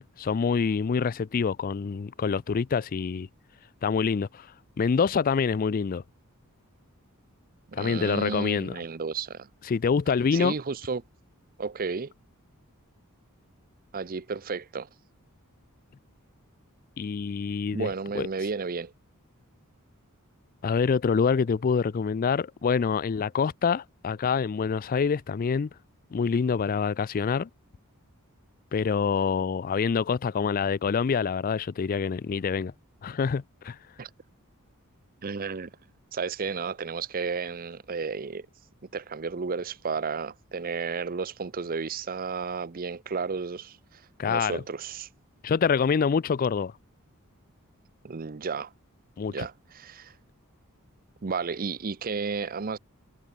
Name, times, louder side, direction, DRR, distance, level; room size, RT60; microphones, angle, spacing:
voice 1, 0.0-3.3 3.8-4.5 4.8-6.0 7.7-8.8 9.7-10.5 17.0-17.9 18.2-18.3 20.6-25.7 26.1-27.5 28.7-32.7 33.0-33.8 44.2-44.6 45.4-46.7 49.2-49.5, left 6 dB, 40° left, 0.4 m, -26 dB
voice 2, 7.7-9.5 10.3-11.0 11.6-12.1 13.9-14.9 17.7-18.9 34.0-34.1 35.2-35.7 36.1-38.5 38.9-45.1 48.0-48.7 49.3-50.1 51.2-52.8, right 5 dB, 40° right, 0.6 m, -32 dB
head